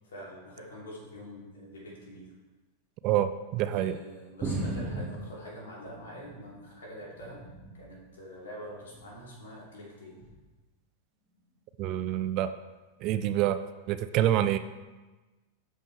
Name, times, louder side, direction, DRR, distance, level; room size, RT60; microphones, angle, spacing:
voice 1, 0.0-2.3 3.6-7.4 7.7-10.2, equal, 65° left, -4 dB, 3.0 m, -45 dB
voice 2, 3.0-3.9 11.8-12.5 13.0-13.6 13.9-14.6, right 12 dB, 40° right, 12 dB, 0.4 m, -26 dB
sound 1, 4.4-6.6 7.0-7.9 8.8-9.2 10.2-10.3, right 2 dB, 20° right, 1.7 m, -37 dB
12.0 x 5.3 x 3.3 m, 1.2 s
figure-of-eight pair, 90°, 0 cm